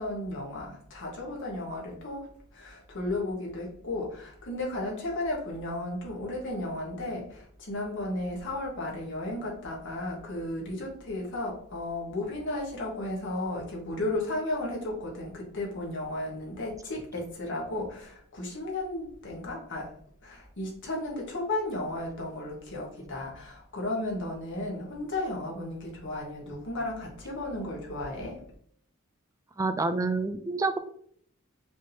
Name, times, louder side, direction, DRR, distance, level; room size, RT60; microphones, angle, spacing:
voice 1, 0.0-19.9 20.2-28.4, left 1 dB, 60° left, -1 dB, 1.4 m, -34 dB
voice 2, 29.6-30.8, right 3 dB, 15° right, 9 dB, 0.3 m, -28 dB
5.1 x 3.5 x 2.8 m, 0.62 s
head